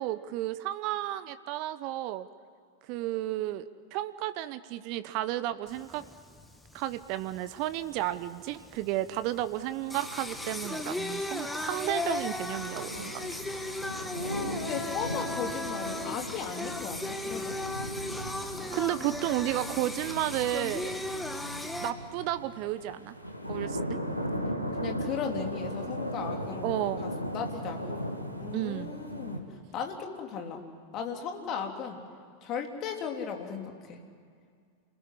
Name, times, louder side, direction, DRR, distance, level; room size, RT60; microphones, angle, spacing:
voice 1, 0.0-2.3 2.9-6.0 6.7-13.2 18.4-21.0 21.8-23.1 23.5-24.0 26.6-27.0 28.5-28.9, right 14 dB, 45° right, 14 dB, 0.9 m, -32 dB
Singing, 5.7-21.9, left 2 dB, 5° left, 1.8 m, -37 dB
sound 1, 9.8-29.4, equal, 90° left, 2.4 m, -38 dB
voice 2, 14.6-17.6 24.8-26.7 27.0-28.0 28.4-29.5 29.7-30.6 30.9-32.0 32.4-34.0, left 6 dB, 35° left, 3 dB, 3.4 m, -36 dB
28.5 x 21.0 x 10.0 m, 2.2 s
figure-of-eight pair, 90°, 0 cm